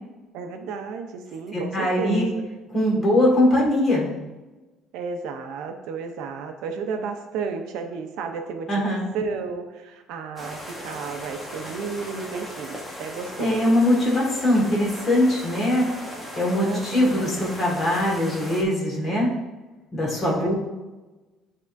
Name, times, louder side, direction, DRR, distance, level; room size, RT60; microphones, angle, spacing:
voice 1, 0.3-2.4 4.9-13.8 16.6-17.5 20.2-20.5, right 5 dB, 75° right, 5 dB, 0.6 m, -33 dB
voice 2, 1.5-2.2 2.7-4.1 8.7-9.0 13.4-15.9 16.4-19.3 19.9-20.5, left 1 dB, 25° left, -3 dB, 1.7 m, -21 dB
sound 1, 10.4-18.6, equal, 5° left, 1.0 m, -37 dB
10.5 x 3.6 x 2.6 m, 1.1 s
cardioid pair, 170°, 0 cm